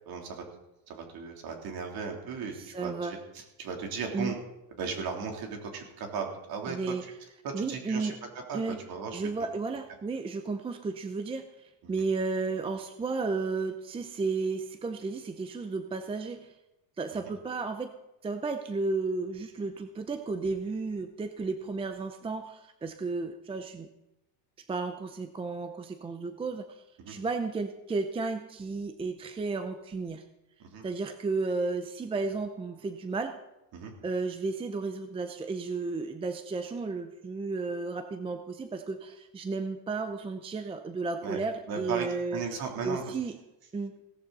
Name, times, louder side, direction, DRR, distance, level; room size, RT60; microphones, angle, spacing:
voice 1, 0.1-0.4 0.9-2.5 2.8-4.3 4.8-6.8 7.4-8.1 8.5-8.6 8.9-9.3 17.2-17.3 27.0-27.1 30.6-30.8 33.7-33.9 41.2-41.4 41.7-43.0, right 6 dB, 50° right, 2 dB, 3.4 m, -36 dB
voice 2, 2.5-3.2 4.1-4.3 6.7-7.0 7.5-8.2 8.5-8.8 9.1-16.5 17.0-17.9 18.2-23.9 24.7-30.2 30.8-33.4 34.0-42.5 42.8-43.4 43.7-43.9, right 3 dB, 15° right, 8 dB, 0.5 m, -33 dB
17.0 x 14.0 x 4.1 m, 0.93 s
cardioid pair, 160°, 46 cm